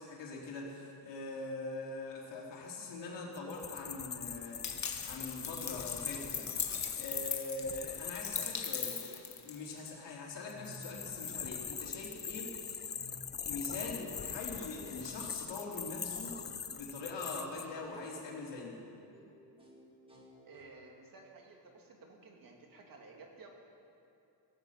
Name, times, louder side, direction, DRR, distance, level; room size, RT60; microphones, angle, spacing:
voice 1, 0.0-8.9 9.4-12.5 13.5-16.3 16.7-18.8, left 3 dB, 85° left, -2 dB, 3.7 m, -42 dB
sound 1, 3.3-8.7 10.5-17.7, left 7 dB, 25° left, 0.5 m, -42 dB
sound 2, 4.6-9.9, left 7 dB, 40° left, 1.3 m, -39 dB
sound 3, 10.5-11.3 12.9-13.4 14.1-14.2 14.5-14.6 14.8-21.0, equal, 10° right, 2.1 m, -57 dB
voice 2, 20.4-23.5, right 3 dB, 50° right, 1 dB, 2.5 m, -54 dB
16.0 x 15.5 x 5.9 m, 2.7 s
cardioid pair, 145°, 42 cm